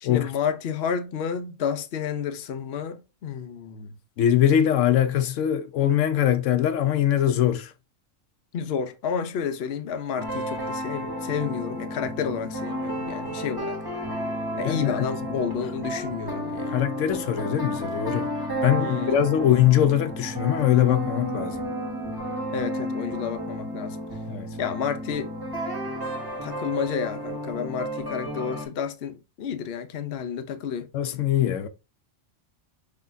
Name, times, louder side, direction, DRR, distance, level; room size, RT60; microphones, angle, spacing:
voice 1, 0.0-4.0 8.5-13.8 14.6-16.8 18.8-19.2 22.5-24.0 24.6-25.3 26.4-30.9, left 7 dB, 60° left, 0.9 m, -30 dB
voice 2, 4.2-7.7 14.6-15.1 16.7-18.3 18.6-21.7 24.3-24.5 30.9-31.7, left 11 dB, 90° left, 1.0 m, -22 dB
sound 1, 10.2-28.7, equal, 20° right, 1.4 m, -32 dB
5.9 x 3.2 x 2.6 m
omnidirectional pair, 1.3 m